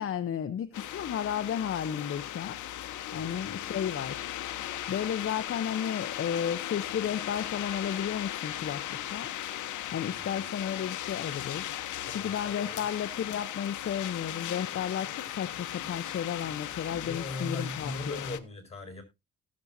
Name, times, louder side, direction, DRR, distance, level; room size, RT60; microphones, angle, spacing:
voice 1, 0.0-2.6 3.1-4.3 4.6-9.3 9.9-11.6 12.1-18.2, left 9 dB, 45° left, 0.9 m, -33 dB
sound 1, 0.7-18.4, left 12 dB, 75° left, 1.0 m, -37 dB
voice 2, 10.1-10.5 12.1-12.9 17.0-19.0, left 2 dB, 20° left, 4.9 m, -40 dB
17.5 x 7.4 x 2.7 m
cardioid pair, 90°, 30 cm